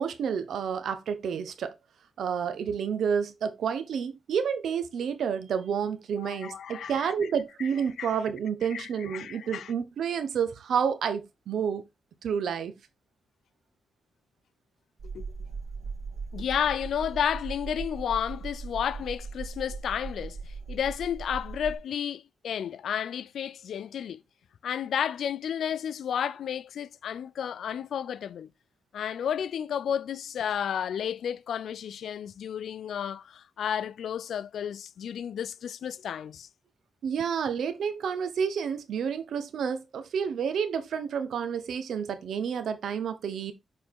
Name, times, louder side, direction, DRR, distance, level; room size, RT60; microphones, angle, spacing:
voice 1, 0.0-1.8 2.2-11.8 12.2-12.7 37.0-43.5, right 7 dB, 85° right, 1.1 m, -30 dB
voice 2, 6.2-7.3 7.6-7.7 8.0-8.2 8.7-9.7 15.1-15.3 16.3-24.2 24.6-28.5 28.9-36.5, left 8 dB, 85° left, 0.4 m, -32 dB
sound 1, 15.0-21.8, right 4 dB, 60° right, 1.6 m, -39 dB
6.7 x 4.3 x 3.7 m
cardioid pair, 95°, 0 cm